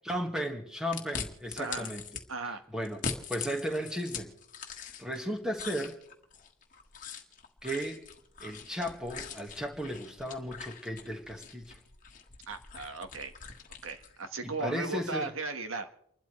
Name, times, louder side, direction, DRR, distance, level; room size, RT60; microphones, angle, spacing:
voice 1, 0.1-2.0 2.4-3.0 3.3-4.3 5.0-6.0 7.6-8.0 8.4-11.8 14.4-15.3, equal, 5° right, 2 dB, 1.7 m, -35 dB
sound 1, 0.9-2.2 2.8-5.2 5.5-14.2, left 6 dB, 40° left, 1.6 m, -42 dB
voice 2, 1.6-1.9 2.3-2.6 12.5-13.3 13.8-15.9, right 3 dB, 85° right, 8 dB, 1.5 m, -37 dB
29.5 x 12.0 x 3.2 m, 0.75 s
head